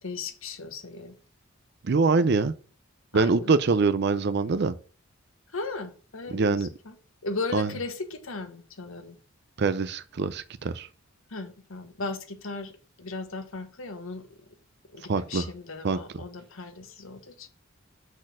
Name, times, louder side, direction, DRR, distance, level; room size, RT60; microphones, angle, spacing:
voice 1, 0.0-1.2 3.1-3.5 5.5-6.9 7.2-9.2 11.3-12.7 13.0-14.3 14.9-17.5, left 3 dB, 80° left, 1.2 m, -36 dB
voice 2, 1.8-2.5 3.1-4.7 6.3-6.7 7.5-7.7 9.6-10.9 15.1-15.5 15.8-16.0, right 4 dB, 55° right, 0.5 m, -24 dB
6.3 x 4.2 x 6.2 m
head